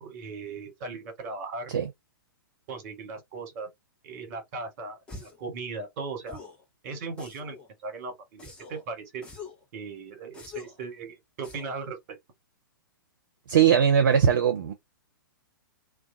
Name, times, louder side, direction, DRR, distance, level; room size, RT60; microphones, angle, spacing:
voice 1, 0.0-1.7 2.7-3.7 4.0-6.4 6.8-7.6 7.8-9.3 9.7-12.2, right 4 dB, 40° right, 1.3 m, -38 dB
sound 1, 5.1-5.5 6.3-6.6 7.2-7.7 8.4-8.8 9.2-9.6 10.3-10.8 11.4-11.8, left 4 dB, 10° left, 0.8 m, -44 dB
voice 2, 13.5-14.7, right 8 dB, 60° right, 0.6 m, -20 dB
2.2 x 2.2 x 2.6 m
figure-of-eight pair, 110°, 12 cm